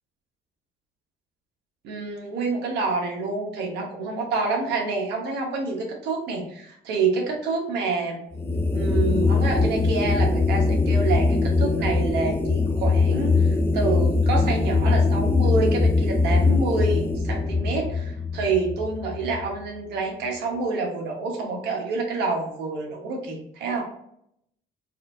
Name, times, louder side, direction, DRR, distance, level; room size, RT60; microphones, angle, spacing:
voice 1, 1.8-8.2 8.7-23.8, right 3 dB, 80° right, 1 dB, 1.1 m, -27 dB
sound 1, 8.3-19.7, left 3 dB, 15° left, 0.4 m, -22 dB
4.1 x 2.5 x 2.6 m, 0.73 s
cardioid pair, 110°, 17 cm